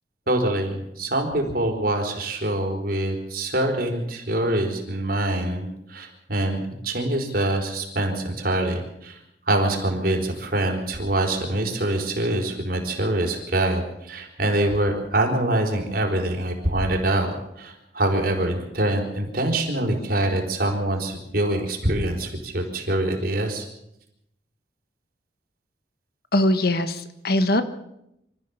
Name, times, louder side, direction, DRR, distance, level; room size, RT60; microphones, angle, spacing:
voice 1, 0.3-9.2 9.5-23.7, right 1 dB, 55° right, 2 dB, 4.3 m, -25 dB
voice 2, 26.3-27.6, left 1 dB, 55° left, 10 dB, 1.4 m, -21 dB
25.5 x 14.0 x 7.2 m, 0.81 s
head